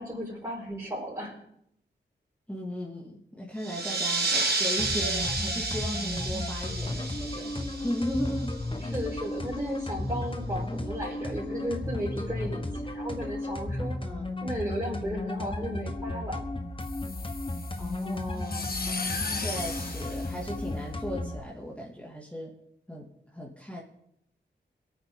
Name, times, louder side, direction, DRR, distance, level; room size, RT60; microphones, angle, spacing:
voice 1, 0.0-1.3 8.8-13.9 14.4-16.4, equal, 20° right, -8 dB, 4.8 m, -34 dB
voice 2, 2.5-4.3 4.6-8.5 14.0-14.3 17.8-18.7 19.3-22.5 22.9-23.8, equal, 5° left, -4 dB, 2.6 m, -36 dB
sound 1, 3.6-8.8, right 3 dB, 55° right, 4.0 m, -31 dB
sound 2, 4.8-21.4, left 2 dB, 25° left, 1.5 m, -34 dB
sound 3, 16.8-21.2, left 3 dB, 50° left, 1.9 m, -37 dB
22.0 x 9.1 x 4.0 m, 0.75 s
cardioid pair, 45°, 19 cm